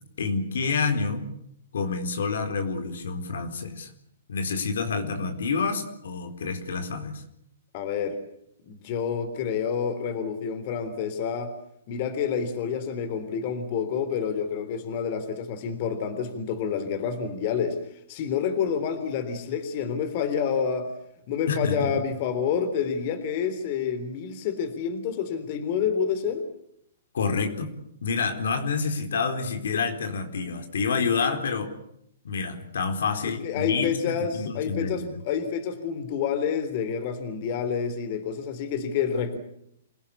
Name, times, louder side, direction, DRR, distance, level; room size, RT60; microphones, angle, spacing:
voice 1, 0.2-1.3 1.7-3.9 4.3-7.2 21.5-21.9 27.1-27.7 28.0-31.7 32.2-35.2, left 4 dB, 75° left, 6 dB, 4.1 m, -28 dB
voice 2, 7.7-8.2 8.7-11.5 11.9-17.8 18.1-20.9 21.3-26.4 33.2-39.4, left 7 dB, 40° left, 9 dB, 3.6 m, -28 dB
27.5 x 17.5 x 8.6 m, 0.74 s
hypercardioid pair, 150°, 0 cm